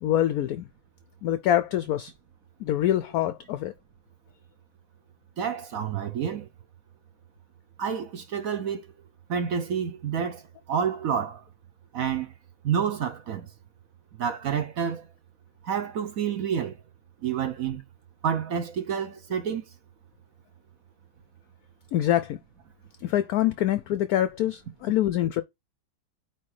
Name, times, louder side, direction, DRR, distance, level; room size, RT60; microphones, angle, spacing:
voice 1, 0.0-0.7 1.2-2.1 2.6-3.7 21.9-22.4 23.0-25.4, left 12 dB, 75° left, 0.9 m, -25 dB
voice 2, 5.4-6.5 7.8-8.9 9.3-10.4 10.7-11.4 11.9-12.3 12.6-13.5 14.2-15.0 15.6-16.7 17.2-17.8 18.2-19.6, right 7 dB, 60° right, 1.0 m, -28 dB
8.9 x 3.3 x 4.8 m
omnidirectional pair, 2.0 m